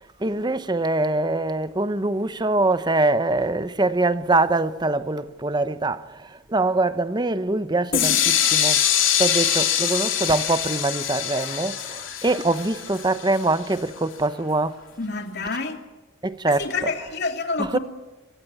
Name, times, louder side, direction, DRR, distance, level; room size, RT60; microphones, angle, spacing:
voice 1, 0.2-8.8 9.2-14.8 16.2-16.9 17.6-17.8, right 2 dB, 20° right, 0.9 m, -23 dB
sound 1, 7.9-13.7, left 10 dB, 70° left, 3.9 m, -23 dB
voice 2, 15.0-15.8 16.5-17.8, left 3 dB, 55° left, 2.9 m, -28 dB
27.5 x 22.5 x 8.5 m
head